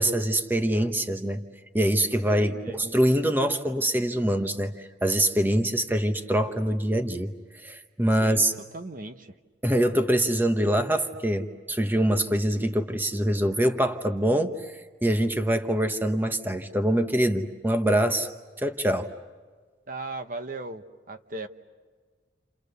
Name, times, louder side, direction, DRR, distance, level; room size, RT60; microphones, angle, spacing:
voice 1, 0.0-1.4 1.7-7.3 7.6-8.5 9.6-14.6 15.0-18.3 18.6-19.1, right 1 dB, 10° right, 6 dB, 1.1 m, -24 dB
voice 2, 2.2-2.8 8.2-8.5 8.7-9.3 19.9-21.5, right 2 dB, 50° right, 8 dB, 1.1 m, -37 dB
29.5 x 29.5 x 6.8 m, 1.4 s
head